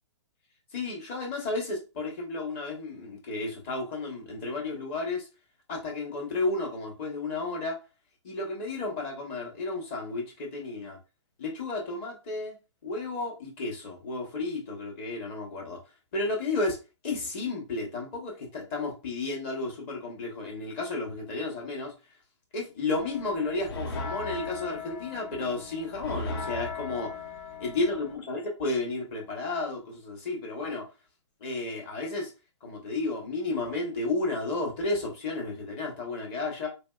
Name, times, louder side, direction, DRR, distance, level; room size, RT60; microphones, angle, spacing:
voice 1, 0.7-5.3 5.7-7.8 8.2-11.0 11.4-12.5 12.8-15.8 16.1-16.8 17.0-21.9 22.5-27.1 27.6-30.8 31.4-32.3 32.6-36.7, left 3 dB, 25° left, 0.9 m, -32 dB
sound 1, 23.0-28.2, left 3 dB, 50° left, 0.7 m, -38 dB
3.1 x 2.6 x 2.2 m
hypercardioid pair, 160°, 16 cm